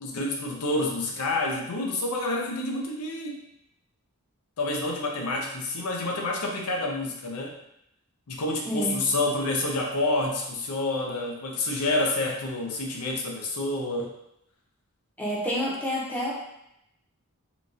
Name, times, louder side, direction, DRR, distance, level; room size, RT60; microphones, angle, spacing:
voice 1, 0.0-3.5 4.6-7.5 8.3-14.1, left 2 dB, 85° left, 0 dB, 0.6 m, -28 dB
voice 2, 15.2-16.3, equal, 5° left, -5 dB, 0.7 m, -28 dB
3.8 x 2.3 x 2.5 m, 0.79 s
head